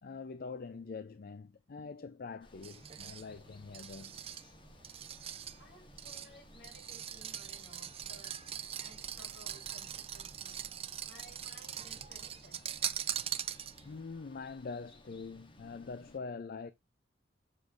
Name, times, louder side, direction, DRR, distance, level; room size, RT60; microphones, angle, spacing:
voice 1, 0.0-4.2 13.8-16.7, left 4 dB, 55° left, 0.5 m, -44 dB
Water, 2.4-16.2, left 1 dB, 30° left, 1.2 m, -60 dB
sound 1, 2.6-14.0, right 9 dB, 35° right, 0.5 m, -42 dB
voice 2, 5.6-10.6 10.8-12.8, equal, 75° left, 3.8 m, -58 dB
7.4 x 6.3 x 2.5 m
head